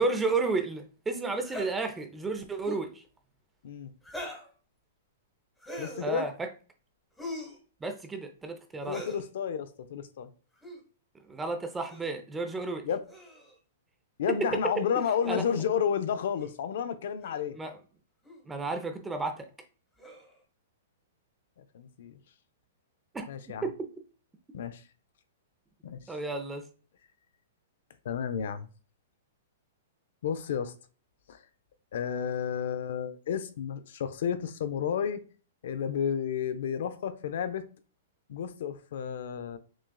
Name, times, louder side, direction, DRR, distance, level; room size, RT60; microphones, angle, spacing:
voice 1, 0.0-3.0 6.0-6.5 7.8-9.0 11.3-12.9 14.9-15.4 17.6-17.7 18.5-19.5 23.1-23.3 23.6-23.7 26.1-26.6, right 3 dB, 10° right, 0.6 m, -32 dB
sound 1, 1.4-1.7 2.5-2.9 4.0-4.5 5.6-6.1 7.2-7.6 8.8-9.2 10.5-10.8 11.9-12.1 13.1-13.5 15.2-15.3 16.4-16.5 17.2-17.4 18.2-18.4 20.0-20.4, equal, 5° left, 1.1 m, -41 dB
voice 2, 5.8-6.3 8.9-10.3 12.8-13.0 14.2-17.6 21.7-22.2 23.3-23.7 24.5-24.8 25.8-26.0 28.0-28.7 30.2-30.7 31.3-31.4 31.9-35.2 35.6-37.6 38.3-39.6, left 8 dB, 70° left, 0.5 m, -31 dB
6.1 x 2.3 x 2.2 m
hypercardioid pair, 130°, 0 cm